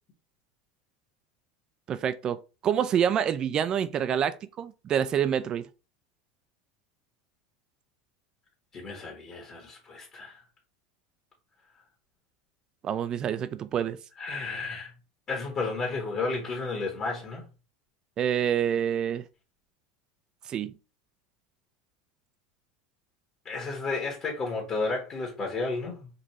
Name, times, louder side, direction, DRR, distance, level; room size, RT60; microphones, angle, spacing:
voice 1, 1.9-5.6 12.8-14.0 18.2-19.2 20.5-20.7, right 9 dB, 35° right, 0.3 m, -27 dB
voice 2, 8.7-10.4 14.2-14.9 15.3-17.4 23.4-26.1, left 3 dB, 35° left, 1.4 m, -32 dB
5.2 x 2.6 x 3.0 m
supercardioid pair, 105°, 2 cm